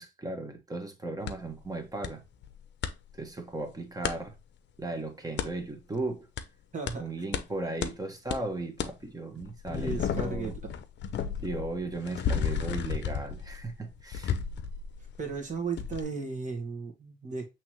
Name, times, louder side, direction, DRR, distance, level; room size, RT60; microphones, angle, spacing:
voice 1, 0.0-2.2 3.2-4.3 4.8-6.3 7.0-10.5 11.4-14.4, right 2 dB, 20° right, 1.3 m, -36 dB
sound 1, 1.3-1.4 2.0-2.1 2.4-2.9 4.0-4.2 5.4-5.5 6.4-6.5 6.9-7.0 7.3-7.4 7.8-7.9 8.3-8.4 8.8-8.9 9.4-15.4 15.8-16.0, left 7 dB, 60° left, 0.6 m, -33 dB
voice 2, 9.7-10.7 15.2-17.5, right 5 dB, 40° right, 1.5 m, -35 dB
5.8 x 3.1 x 3.0 m
cardioid pair, 90°, 20 cm